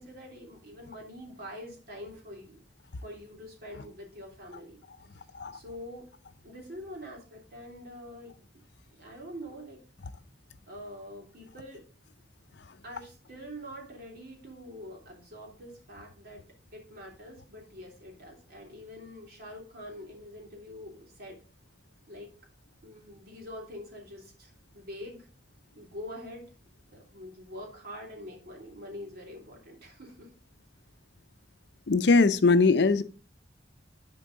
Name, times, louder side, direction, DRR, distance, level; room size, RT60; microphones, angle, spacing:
voice 1, 0.0-2.6 3.0-4.8 5.5-6.1 6.4-8.4 9.0-9.8 10.7-11.8 12.8-16.4 16.7-21.4 22.1-22.3 22.8-25.2 25.7-26.4 26.9-30.3, equal, 60° right, 3.1 m, -45 dB
voice 2, 31.9-33.0, left 3 dB, 65° left, 0.6 m, -21 dB
11.0 x 4.5 x 3.7 m
head